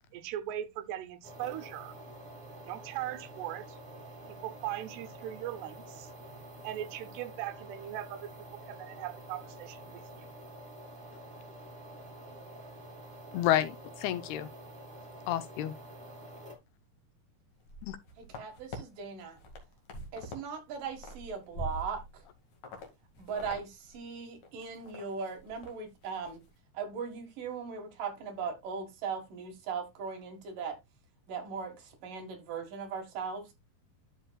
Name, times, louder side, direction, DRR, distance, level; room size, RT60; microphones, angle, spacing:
voice 1, 0.1-2.0 2.6-3.8 4.3-6.1 6.6-10.3, right 12 dB, 80° right, 2.9 m, -39 dB
sound 1, 1.2-16.6, right 1 dB, 45° right, 0.5 m, -48 dB
voice 2, 13.3-13.8 14.0-14.5 15.3-15.7 17.8-18.0, left 12 dB, 80° left, 2.7 m, -29 dB
sound 2, 17.6-18.8 19.2-20.4 20.7-22.2 22.6-22.9 23.2-23.6 23.9-24.0 24.4-25.0 25.4-25.7 26.0-26.3, left 1 dB, 50° left, 3.0 m, -43 dB
voice 3, 18.2-19.4 20.1-22.2 23.2-26.4 26.7-30.8 31.3-33.5, right 6 dB, 60° right, 2.9 m, -39 dB
12.5 x 5.8 x 2.3 m
omnidirectional pair, 4.8 m